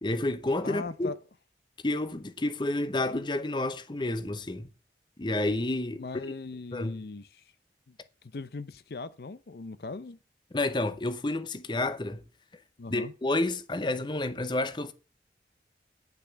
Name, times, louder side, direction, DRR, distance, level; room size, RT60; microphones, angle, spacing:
voice 1, 0.0-1.1 1.8-4.7 5.2-6.0 6.7-7.0 10.5-12.2 12.9-14.9, left 2 dB, 25° left, 0.7 m, -30 dB
voice 2, 0.6-1.2 5.9-7.4 7.9-8.0 8.2-10.2 12.8-13.1, left 3 dB, 60° left, 0.6 m, -39 dB
10.0 x 6.0 x 6.9 m
head